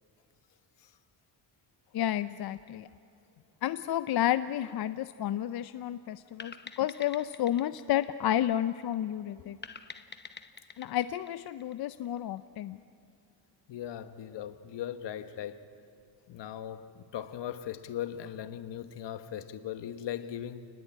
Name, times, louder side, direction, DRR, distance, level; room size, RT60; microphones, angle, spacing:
voice 1, 1.9-2.9 3.6-9.6 10.8-12.8 14.4-14.5, left 12 dB, 60° left, 0.6 m, -31 dB
sound 1, 6.4-8.9 9.6-12.2, left 5 dB, 25° left, 0.9 m, -47 dB
voice 2, 13.7-15.6 16.3-20.7, left 10 dB, 80° left, 1.3 m, -39 dB
28.5 x 20.0 x 8.7 m
cardioid pair, 150°, 42 cm